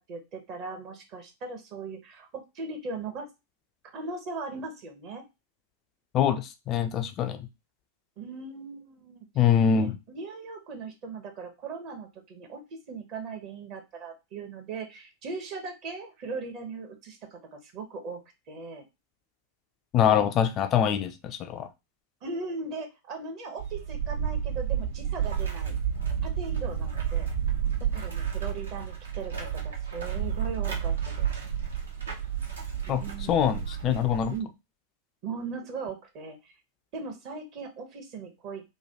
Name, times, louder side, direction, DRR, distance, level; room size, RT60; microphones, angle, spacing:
voice 1, 0.0-3.3 3.9-5.2 8.2-9.3 9.7-18.2 18.5-18.8 22.2-25.8 26.2-27.3 27.8-31.3 32.9-33.7 34.3-34.5 35.2-36.5 36.9-38.6, right 4 dB, 40° right, 4 dB, 0.9 m, -39 dB
voice 2, 6.1-7.4 9.4-9.9 19.9-21.7 32.9-34.3, left 8 dB, 35° left, 8 dB, 0.3 m, -24 dB
sound 1, 23.6-34.4, right 8 dB, 70° right, 0.7 m, -31 dB
3.1 x 2.2 x 2.7 m, 0.24 s
figure-of-eight pair, 90°, 0 cm